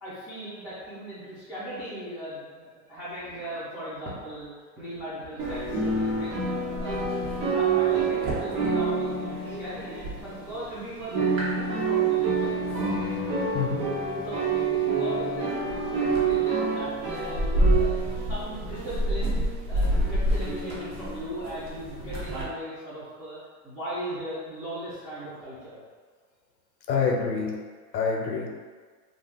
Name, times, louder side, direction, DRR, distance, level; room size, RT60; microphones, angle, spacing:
voice 1, 0.0-6.4 6.8-7.0 7.5-12.6 14.2-19.4 19.7-23.4 23.6-25.8, equal, 5° right, -14 dB, 0.5 m, -38 dB
sound 1, 5.4-10.7 11.0-22.4, right 3 dB, 55° right, 1.1 m, -27 dB
voice 2, 13.5-13.9 26.9-27.5 27.9-28.5, left 5 dB, 80° left, 1 dB, 0.8 m, -26 dB
2.5 x 2.4 x 3.5 m, 1.5 s
hypercardioid pair, 125°, 49 cm